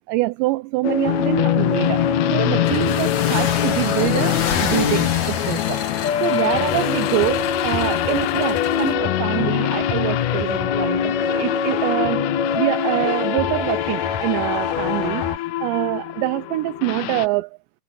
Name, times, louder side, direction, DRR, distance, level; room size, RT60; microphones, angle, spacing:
voice 1, 0.1-2.0 2.3-5.8 6.2-17.6, right 19 dB, 80° right, 2.6 m, -25 dB
sound 1, 0.8-15.4, left 7 dB, 65° left, 1.8 m, -24 dB
sound 2, 1.1-17.3, left 17 dB, 80° left, 2.5 m, -26 dB
sound 3, 2.6-8.9, left 7 dB, 45° left, 3.2 m, -30 dB
omnidirectional pair, 5.7 m